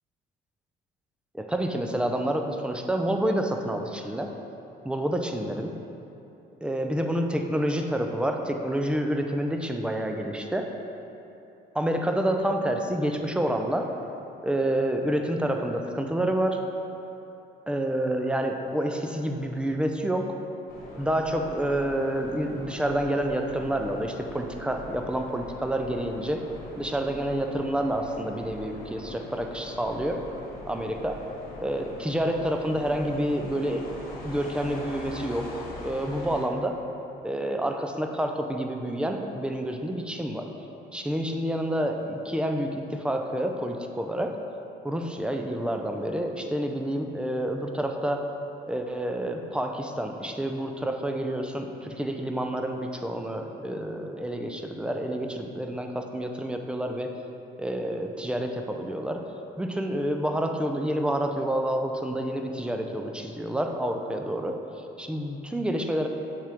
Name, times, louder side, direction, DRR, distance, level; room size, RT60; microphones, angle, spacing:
voice 1, 1.3-4.3 4.8-5.7 6.6-10.7 11.7-13.9 14.4-16.6 17.7-20.2 21.0-26.4 26.8-30.2 30.7-31.2 31.6-36.8 37.2-40.5 40.9-44.4 44.8-48.2 48.7-57.1 57.6-59.2 59.6-64.6 65.0-66.1, right 1 dB, 5° right, 4 dB, 0.4 m, -28 dB
sound 1, 20.7-36.5, left 2 dB, 55° left, 1.2 m, -42 dB
7.3 x 4.5 x 3.5 m, 2.9 s
cardioid pair, 110°, 17 cm